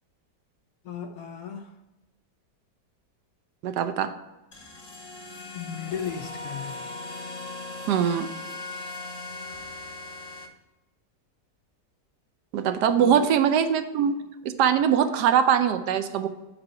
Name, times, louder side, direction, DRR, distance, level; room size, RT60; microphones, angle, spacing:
voice 1, 0.9-1.7 5.5-6.8 13.0-13.3, left 8 dB, 70° left, 6 dB, 0.9 m, -35 dB
voice 2, 3.6-4.1 7.9-8.3 12.5-16.3, right 8 dB, 75° right, 9 dB, 1.1 m, -22 dB
sound 1, 4.5-10.5, left 2 dB, 30° left, 0.8 m, -38 dB
7.9 x 3.5 x 5.7 m, 1.0 s
omnidirectional pair, 1.9 m